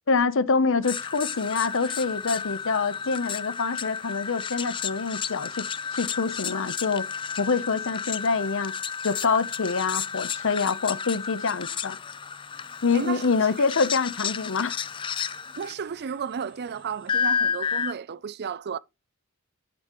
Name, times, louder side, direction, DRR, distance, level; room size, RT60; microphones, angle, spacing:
voice 1, 0.1-7.1 7.4-8.7 9.0-12.0 12.8-14.7, left 4 dB, 60° left, 0.8 m, -26 dB
sound 1, 0.8-15.7 17.1-17.9, left 6 dB, 25° left, 0.4 m, -32 dB
voice 2, 12.9-13.3 15.6-18.8, right 6 dB, 50° right, 0.4 m, -33 dB
10.0 x 8.4 x 3.0 m
head